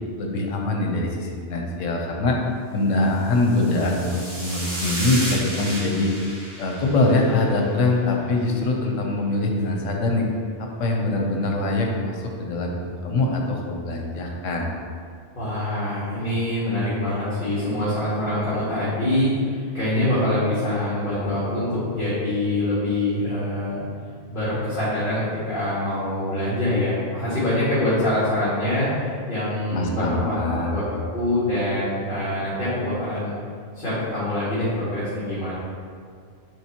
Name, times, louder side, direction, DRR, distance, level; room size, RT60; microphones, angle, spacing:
voice 1, 0.2-2.4 2.7-6.1 6.6-10.3 10.8-14.7 29.7-30.8, left 2 dB, 90° left, 0 dB, 1.2 m, -23 dB
sound 1, 3.3-7.8, right 1 dB, 55° right, 1.5 m, -33 dB
voice 2, 15.3-23.8 24.3-28.9 29.3-30.8 31.1-33.3 33.7-35.5, left 1 dB, 40° left, -12 dB, 1.8 m, -24 dB
9.3 x 3.4 x 2.9 m, 2.2 s
omnidirectional pair, 1.3 m